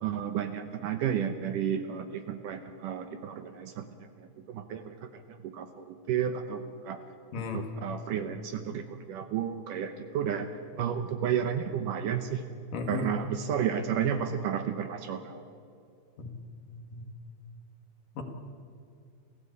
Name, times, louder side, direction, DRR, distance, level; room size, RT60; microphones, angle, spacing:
voice 1, 0.0-7.0 7.4-10.5 10.8-12.4 12.9-15.4, right 8 dB, 70° right, 9 dB, 2.2 m, -32 dB
voice 2, 7.3-7.6 12.7-13.1 16.2-16.3 16.9-17.0 18.2-18.3, left 4 dB, 60° left, 5 dB, 3.5 m, -34 dB
29.0 x 15.0 x 8.4 m, 2.4 s
omnidirectional pair, 4.5 m